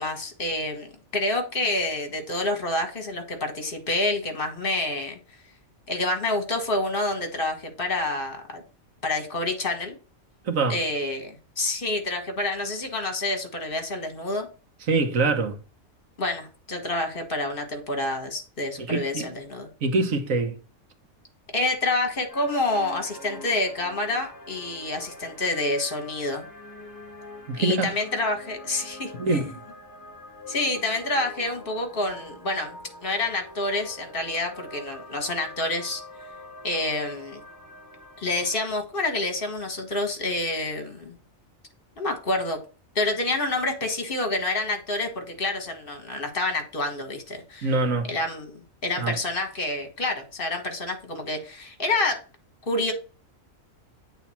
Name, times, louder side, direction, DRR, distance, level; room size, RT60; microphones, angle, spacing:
voice 1, 0.0-5.2 5.9-8.6 9.0-10.0 10.7-14.5 16.2-19.7 21.5-26.5 27.6-29.5 30.5-36.0 36.6-37.4 38.2-41.2 42.0-42.6 43.0-47.7 48.1-52.2 52.7-52.9, left 2 dB, 40° left, 1.8 m, -28 dB
voice 2, 10.4-10.8 14.9-15.6 18.8-19.3 19.8-20.6 27.5-27.9 29.2-29.4 47.6-48.1 49.0-49.1, right 3 dB, 75° right, 1.6 m, -24 dB
sound 1, 22.3-38.6, left 1 dB, 15° left, 2.2 m, -44 dB
8.3 x 3.9 x 4.4 m
omnidirectional pair, 1.4 m